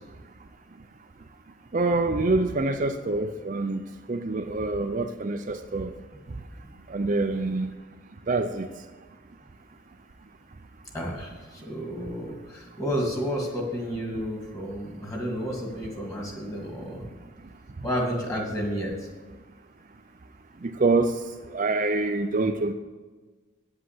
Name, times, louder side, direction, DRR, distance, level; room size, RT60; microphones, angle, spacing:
voice 1, 1.7-3.8 4.1-5.9 6.9-7.7 8.3-8.7 20.6-21.2 21.5-22.7, right 3 dB, 40° right, 6 dB, 0.5 m, -25 dB
voice 2, 10.9-17.0 17.8-18.9, equal, 15° left, -1 dB, 2.3 m, -31 dB
9.1 x 7.8 x 8.2 m, 1.3 s
head